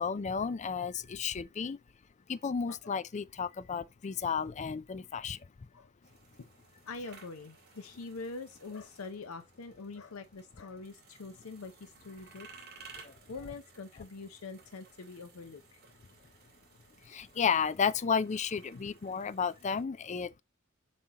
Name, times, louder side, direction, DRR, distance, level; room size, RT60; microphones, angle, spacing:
voice 1, 0.0-1.8 2.3-5.4 17.1-20.4, left 6 dB, 35° left, 0.4 m, -32 dB
sound 1, 6.0-19.8, right 5 dB, 50° right, 2.2 m, -58 dB
voice 2, 6.9-12.9 13.3-15.8 16.2-16.3 18.7-18.8, left 3 dB, 80° left, 0.6 m, -45 dB
7.5 x 4.3 x 2.9 m
head